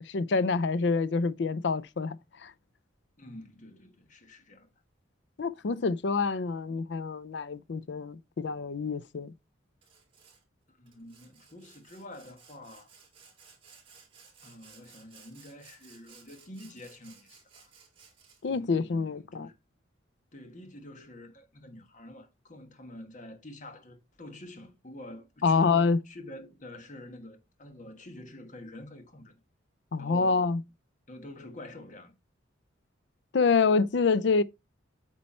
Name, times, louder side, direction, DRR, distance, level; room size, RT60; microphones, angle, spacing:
voice 1, 0.0-2.2 2.4-2.5 5.4-9.3 18.4-19.5 25.4-26.0 29.9-30.6 33.3-34.4, left 4 dB, 65° left, 0.5 m, -27 dB
voice 2, 3.2-4.7 10.7-12.9 14.4-17.7 18.5-19.6 20.3-29.4 30.0-30.5 31.1-32.2, left 1 dB, 40° left, 1.4 m, -47 dB
Sawing, 9.8-10.4 10.9-18.6, right 5 dB, 30° right, 3.9 m, -57 dB
8.6 x 4.4 x 4.3 m
head